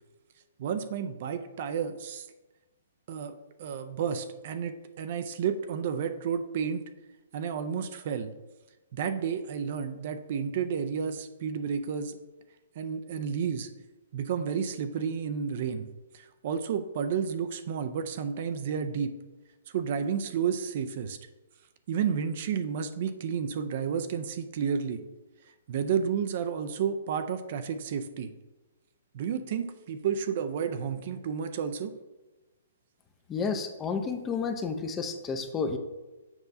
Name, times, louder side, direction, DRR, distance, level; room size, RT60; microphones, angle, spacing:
voice 1, 0.6-2.3 3.1-6.8 7.3-8.3 8.9-12.2 12.8-13.7 14.1-19.1 19.7-21.2 21.9-25.0 25.7-28.3 29.1-31.9, right 7 dB, 50° right, 9 dB, 0.4 m, -31 dB
voice 2, 33.3-35.8, left 5 dB, 20° left, 6 dB, 0.6 m, -31 dB
7.2 x 5.4 x 2.7 m, 1.1 s
hypercardioid pair, 130°, 0 cm